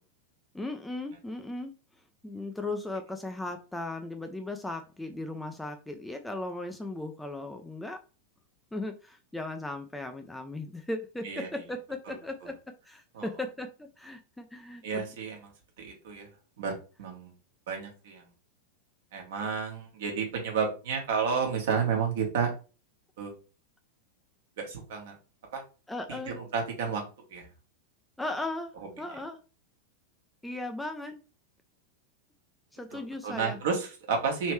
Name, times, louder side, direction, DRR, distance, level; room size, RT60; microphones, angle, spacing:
voice 1, 0.5-1.7 2.2-8.0 8.7-15.1 25.9-26.4 28.2-29.4 30.4-31.2 32.7-33.6, left 2 dB, 5° left, 5 dB, 0.4 m, -37 dB
voice 2, 11.2-11.6 12.1-12.2 13.1-13.3 14.8-15.5 15.8-16.3 16.6-16.7 17.0-17.3 17.7-18.2 19.1-22.5 23.2-23.3 24.6-25.2 25.5-25.6 26.1-27.0 27.3-27.5 32.9-34.5, right 6 dB, 55° right, 2 dB, 1.2 m, -31 dB
3.1 x 3.0 x 3.1 m, 0.34 s
figure-of-eight pair, 90°, 0 cm